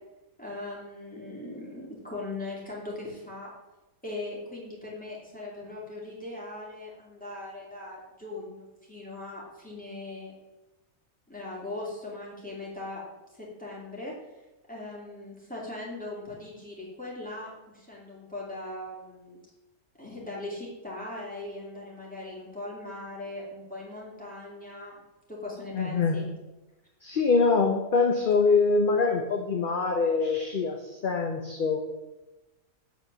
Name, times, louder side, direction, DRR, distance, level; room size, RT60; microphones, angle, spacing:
voice 1, 0.4-3.5 4.0-10.3 11.3-13.0 13.3-14.1 14.7-19.4 20.0-25.0 25.3-26.3, left 2 dB, 5° left, -5 dB, 2.5 m, -39 dB
voice 2, 25.7-26.2 27.0-31.8, left 4 dB, 45° left, 3 dB, 0.7 m, -24 dB
7.8 x 4.5 x 6.6 m, 1.0 s
omnidirectional pair, 1.5 m